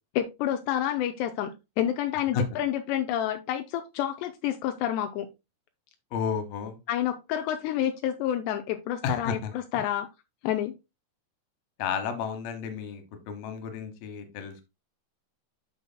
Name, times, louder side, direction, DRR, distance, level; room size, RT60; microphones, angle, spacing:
voice 1, 0.2-5.3 6.9-10.1 10.4-10.7, left 11 dB, 85° left, 6 dB, 2.7 m, -29 dB
voice 2, 6.1-6.8 9.0-9.5 11.8-14.6, left 6 dB, 70° left, 7 dB, 2.8 m, -32 dB
9.9 x 6.2 x 2.2 m, 0.24 s
omnidirectional pair, 4.8 m